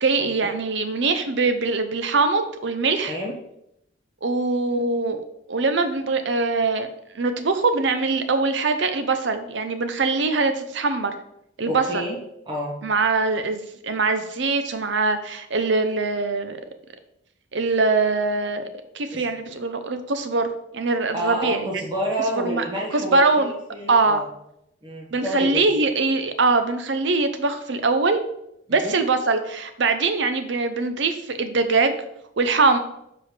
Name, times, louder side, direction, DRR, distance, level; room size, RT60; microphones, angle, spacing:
voice 1, 0.0-3.2 4.2-5.2 5.5-6.9 7.1-11.1 11.6-12.0 12.8-16.6 17.5-18.7 18.9-20.5 20.7-21.8 22.4-22.6 22.9-23.5 23.9-24.2 25.1-28.2 28.7-31.9 32.4-32.8, right 3 dB, 60° right, 9 dB, 0.7 m, -22 dB
voice 2, 11.7-12.1 12.5-12.7 19.1-19.2 21.1-24.3 24.8-25.6 28.7-28.9, equal, 25° right, -3 dB, 1.4 m, -29 dB
7.1 x 4.8 x 3.3 m, 0.79 s
head